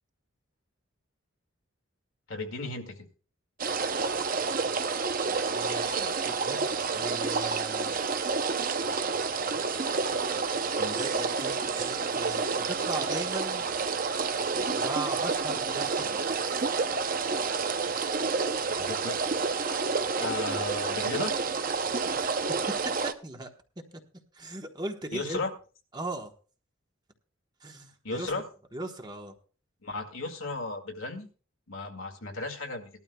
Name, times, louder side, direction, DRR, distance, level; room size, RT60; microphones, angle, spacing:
voice 1, 2.3-3.1 10.8-11.0 18.7-19.2 19.6-19.9 20.2-21.4 25.1-25.5 28.0-28.4 29.8-31.3 31.7-32.9, left 2 dB, 75° left, 4 dB, 2.1 m, -35 dB
sound 1, 3.6-23.1, right 4 dB, 40° right, 0.6 m, -29 dB
voice 2, 5.5-8.0 10.6-13.7 14.7-16.8 17.4-17.5 22.2-22.3 22.7-22.8 23.0-23.5 23.9-24.0 24.3-25.4 25.9-26.3 27.6-28.3 28.7-29.3, right 2 dB, 20° right, 4 dB, 1.1 m, -38 dB
19.5 x 12.0 x 2.3 m, 0.38 s
head